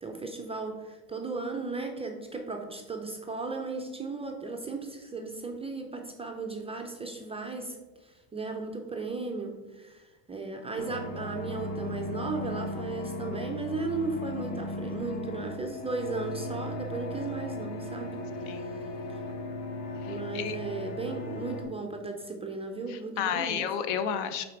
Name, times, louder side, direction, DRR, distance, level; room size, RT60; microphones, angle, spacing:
voice 1, 0.0-7.8 8.0-18.2 20.1-23.7, right 3 dB, 15° right, 2 dB, 0.4 m, -36 dB
sound 1, 10.8-21.6, left 1 dB, 35° left, 1.1 m, -37 dB
voice 2, 18.5-18.8 20.0-20.6 22.9-24.5, left 8 dB, 55° left, 10 dB, 0.8 m, -32 dB
5.5 x 4.0 x 4.8 m, 1.2 s
supercardioid pair, 100°, 50 cm